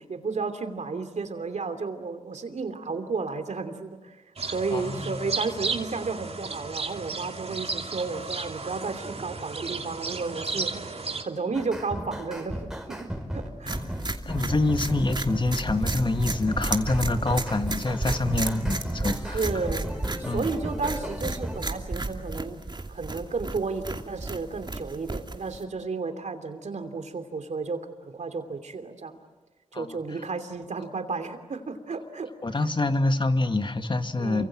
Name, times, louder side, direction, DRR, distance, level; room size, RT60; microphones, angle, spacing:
voice 1, 0.0-13.9 19.3-19.9 20.2-22.6 22.9-29.2 29.7-32.6 34.2-34.5, right 4 dB, 85° right, 8 dB, 3.0 m, -33 dB
sound 1, 4.4-11.2, right 4 dB, 60° right, 2.7 m, -34 dB
voice 2, 4.7-5.1 13.6-19.4 20.3-20.4 29.7-29.9 32.4-34.5, left 2 dB, 45° left, 8 dB, 2.0 m, -26 dB
sound 2, 11.5-21.6, equal, 5° right, 5.3 m, -35 dB
sound 3, 13.7-25.6, right 2 dB, 40° right, 2.6 m, -33 dB
29.0 x 25.5 x 7.6 m, 1.2 s
wide cardioid pair, 65°, 12 cm